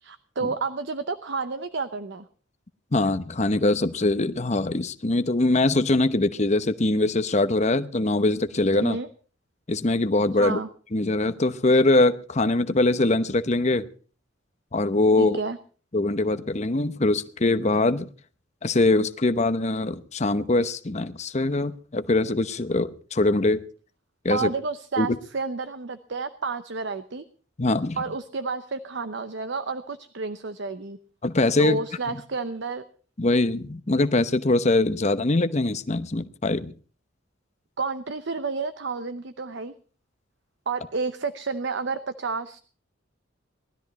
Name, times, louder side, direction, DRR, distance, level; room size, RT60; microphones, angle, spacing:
voice 1, 0.0-2.3 8.8-9.1 10.3-10.7 15.2-15.6 24.3-27.2 28.0-31.0 31.6-32.8 37.8-39.7 40.7-42.6, right 4 dB, 65° right, 11 dB, 0.8 m, -30 dB
voice 2, 2.9-9.0 9.7-10.6 10.9-13.9 14.7-15.4 15.9-18.1 18.6-23.6 24.2-24.5 25.0-25.1 27.6-28.0 31.2-31.8 33.2-36.7, left 2 dB, 35° left, 11 dB, 0.9 m, -22 dB
19.0 x 13.0 x 4.1 m, 0.40 s
head